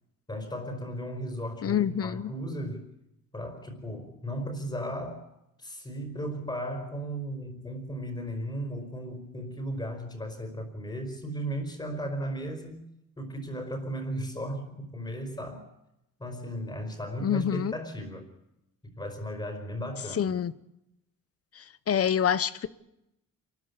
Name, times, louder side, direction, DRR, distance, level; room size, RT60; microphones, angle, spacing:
voice 1, 0.3-2.9 3.3-5.3 5.6-12.8 13.2-15.7 16.2-18.3 18.8-20.3, equal, 15° left, 4.6 m, -36 dB
voice 2, 1.6-2.3 17.2-17.7 20.1-20.5 21.5-22.7, left 9 dB, 45° left, 0.9 m, -27 dB
28.0 x 14.0 x 9.8 m
wide cardioid pair, 155°, 34 cm